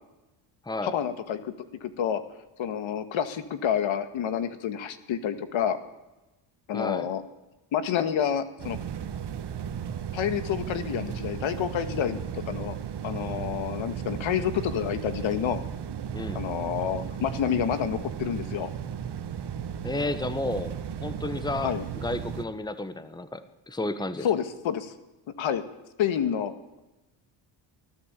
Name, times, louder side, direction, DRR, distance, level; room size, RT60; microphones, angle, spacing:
voice 1, 0.8-1.5 1.8-2.2 2.6-5.8 6.7-7.2 7.7-8.8 10.1-12.8 13.0-15.6 16.3-18.7 21.6-21.9 24.2-24.9 25.4-25.6 26.0-26.5, left 9 dB, 70° left, 10 dB, 2.0 m, -28 dB
voice 2, 6.7-7.1 16.1-16.4 19.8-20.7 21.0-21.7 22.0-24.3, left 2 dB, 10° left, 11 dB, 1.3 m, -32 dB
sound 1, 8.6-22.5, right 8 dB, 55° right, 1.7 m, -35 dB
23.5 x 14.5 x 8.4 m, 1.0 s
cardioid pair, 95°, 49 cm